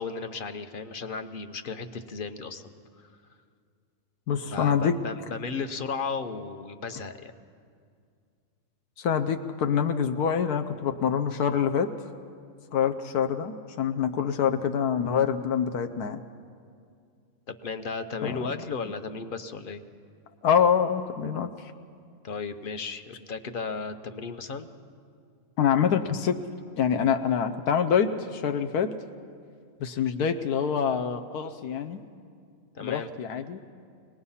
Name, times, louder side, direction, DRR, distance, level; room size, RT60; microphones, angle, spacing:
voice 1, 0.0-3.4 4.4-7.3 17.5-19.8 22.2-24.7 32.7-33.1, left 4 dB, 45° left, 9 dB, 0.8 m, -35 dB
voice 2, 4.3-5.0 9.0-11.9 12.7-16.2 18.2-18.4 20.4-21.7 25.6-26.4 26.8-28.9 29.8-32.0 32.8-33.6, left 7 dB, 85° left, 6 dB, 1.3 m, -25 dB
24.0 x 19.5 x 5.6 m, 2.2 s
omnidirectional pair, 1.6 m